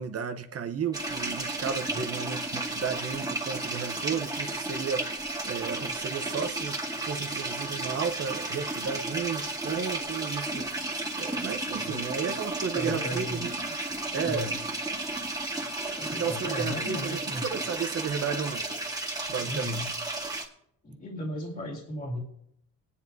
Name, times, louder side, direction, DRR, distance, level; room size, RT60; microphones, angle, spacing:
voice 1, 0.0-5.2 5.4-13.6 14.1-14.5 16.1-18.9 19.3-19.9, right 6 dB, 50° right, 0.9 m, -33 dB
sound 1, 0.9-20.4, right 2 dB, 10° right, 2.1 m, -33 dB
voice 2, 11.8-12.3 12.7-13.5 14.2-14.6 16.0-17.5 19.4-19.9 20.8-22.2, left 1 dB, 30° left, 2.1 m, -35 dB
23.0 x 9.8 x 2.7 m
cardioid pair, 90°, 30 cm